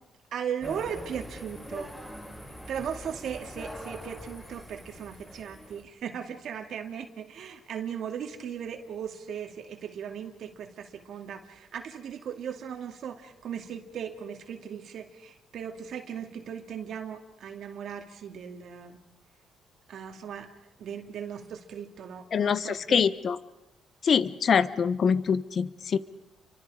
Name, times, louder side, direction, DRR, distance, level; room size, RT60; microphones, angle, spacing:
voice 1, 0.3-1.9 2.7-19.0 19.9-20.5 20.8-23.0, right 8 dB, 70° right, 4 dB, 2.5 m, -37 dB
sound 1, 0.6-5.8, equal, 10° left, 6.1 m, -43 dB
voice 2, 22.3-23.4 24.0-26.0, left 6 dB, 50° left, 15 dB, 1.0 m, -24 dB
30.0 x 24.5 x 4.9 m, 0.94 s
cardioid pair, 90°, 0 cm